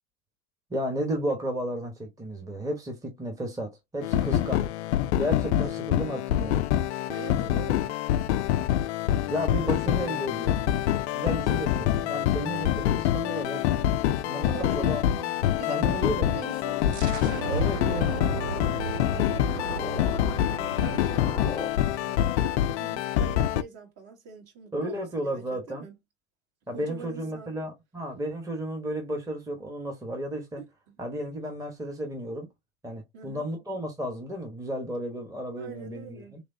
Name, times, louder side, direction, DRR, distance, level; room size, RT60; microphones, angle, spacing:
voice 1, 0.7-4.6 5.2-6.6 9.3-13.9 14.3-16.4 17.5-18.3 24.7-25.8 26.7-30.6 31.0-32.5 32.8-36.4, equal, 10° right, 1.0 m, -33 dB
sound 1, 4.0-23.6, left 12 dB, 75° left, 0.5 m, -26 dB
voice 2, 4.1-4.5 5.5-5.7 7.1-8.0 14.5-15.0 15.6-20.2 20.7-25.9 26.7-27.6 30.6-31.0 33.1-33.5 35.6-36.4, right 6 dB, 45° right, 1.8 m, -43 dB
sound 2, 15.9-21.7, left 5 dB, 15° left, 0.5 m, -40 dB
sound 3, 16.9-22.4, right 6 dB, 70° right, 0.8 m, -36 dB
3.3 x 3.2 x 2.6 m
hypercardioid pair, 95°, 34 cm